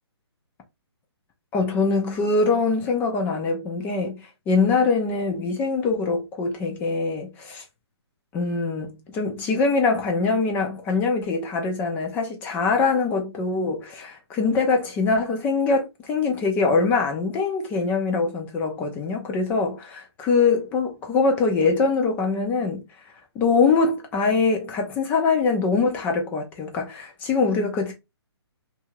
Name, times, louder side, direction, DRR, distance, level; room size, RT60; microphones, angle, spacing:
voice 1, 1.5-7.6 8.3-22.8 23.4-27.9, left 4 dB, 10° left, 0.4 m, -23 dB
2.7 x 2.4 x 2.9 m
hypercardioid pair, 145°, 14 cm